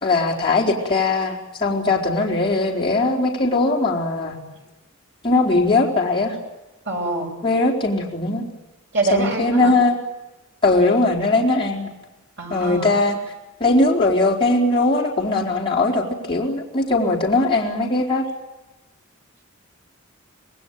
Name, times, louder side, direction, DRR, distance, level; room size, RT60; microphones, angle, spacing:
voice 1, 0.0-4.4 5.2-6.4 7.4-8.5 9.1-9.9 10.6-11.9 12.5-13.2 13.6-18.3, left 2 dB, 25° left, -3 dB, 4.3 m, -20 dB
voice 2, 6.9-7.3 8.9-9.7 12.4-12.9, right 2 dB, 55° right, 3 dB, 6.6 m, -24 dB
27.0 x 20.0 x 9.3 m, 1.1 s
head